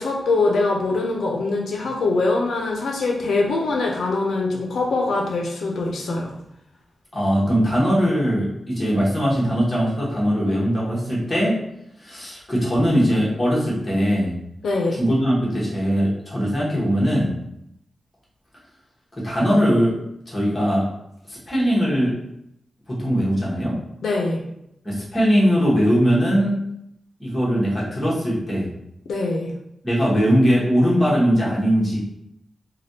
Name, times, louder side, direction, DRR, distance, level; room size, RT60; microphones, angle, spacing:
voice 1, 0.0-6.4 14.6-15.0 24.0-24.4 29.1-29.5, left 3 dB, 85° left, -1 dB, 0.5 m, -23 dB
voice 2, 7.1-11.6 12.0-14.3 14.9-17.3 19.2-19.9 20.3-20.8 21.3-22.1 22.9-23.8 24.8-26.6 27.2-28.7 29.8-32.0, equal, 15° left, -7 dB, 1.1 m, -20 dB
3.3 x 2.2 x 2.7 m, 0.78 s
wide cardioid pair, 150°, 0 cm